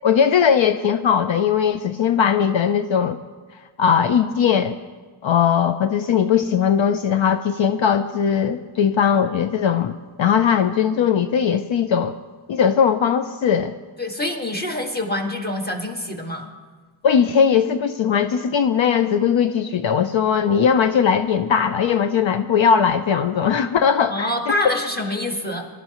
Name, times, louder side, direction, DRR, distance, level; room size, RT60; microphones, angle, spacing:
voice 1, 0.0-3.2 3.8-4.8 5.2-9.9 10.2-12.1 12.5-13.7 17.0-24.3, left 7 dB, 70° left, 9 dB, 0.6 m, -19 dB
voice 2, 14.0-16.5 24.1-25.7, left 1 dB, 20° left, 1 dB, 1.7 m, -26 dB
24.0 x 12.5 x 3.0 m, 1.4 s
wide cardioid pair, 125°, 49 cm